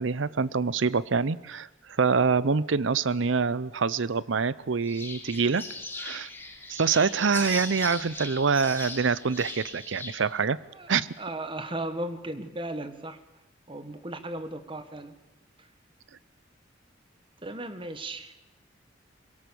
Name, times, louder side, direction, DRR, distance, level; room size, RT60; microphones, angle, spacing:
voice 1, 0.0-5.7 6.0-6.3 6.7-10.6 10.9-11.1, right 5 dB, 70° right, 18 dB, 0.7 m, -25 dB
sound 1, 4.8-10.2, left 3 dB, 10° left, 2.1 m, -39 dB
voice 2, 11.2-13.2 13.7-15.2 15.6-15.7 17.4-18.3, right 1 dB, 25° right, 10 dB, 1.4 m, -36 dB
22.0 x 17.5 x 7.0 m, 0.96 s
head